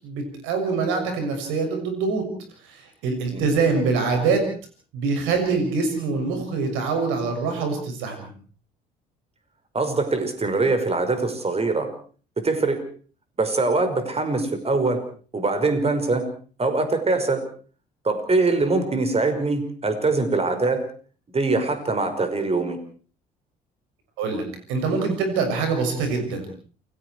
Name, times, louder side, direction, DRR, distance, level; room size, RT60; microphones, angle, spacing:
voice 1, 0.0-2.3 2.7-4.4 4.9-8.3 24.2-24.4 24.7-26.5, right 4 dB, 70° right, 5 dB, 7.0 m, -24 dB
voice 2, 9.7-11.9 12.4-12.8 13.4-15.0 15.3-16.3 16.6-17.4 18.0-20.9 21.3-22.8, right 3 dB, 30° right, 8 dB, 5.5 m, -23 dB
29.0 x 20.0 x 4.7 m, 0.42 s
hypercardioid pair, 55°, 21 cm